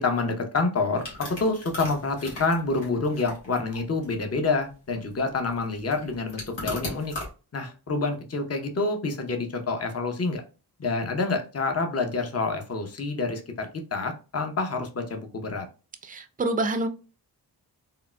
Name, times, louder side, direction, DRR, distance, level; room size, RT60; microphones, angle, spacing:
voice 1, 0.0-7.1 7.5-10.4 10.8-15.7, left 3 dB, 35° left, 5 dB, 0.8 m, -27 dB
sound 1, 1.0-7.3, left 2 dB, 85° left, 1.3 m, -38 dB
voice 2, 16.0-16.9, right 2 dB, 20° right, 7 dB, 0.5 m, -27 dB
3.7 x 2.1 x 2.2 m, 0.33 s
cardioid pair, 45°, 43 cm